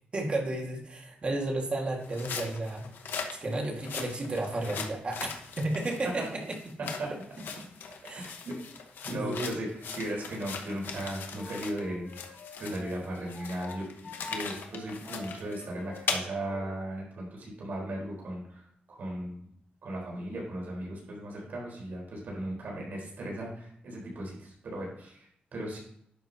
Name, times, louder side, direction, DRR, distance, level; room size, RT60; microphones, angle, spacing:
voice 1, 0.1-5.3 5.6-6.5 7.6-7.7 8.0-8.3 9.1-9.5, right 2 dB, 35° right, 1 dB, 2.0 m, -33 dB
sound 1, 2.0-11.8 12.1-16.2, left 5 dB, 80° left, 1.2 m, -39 dB
voice 2, 8.1-8.5 9.0-12.1 12.6-13.9 14.2-19.4 19.8-25.8, right 1 dB, 65° right, -3 dB, 4.3 m, -37 dB
Wind instrument woodwind instrument, 11.3-16.8, left 4 dB, 60° left, 3.3 m, -47 dB
11.0 x 7.8 x 2.9 m, 0.68 s
wide cardioid pair, 145°, 3 cm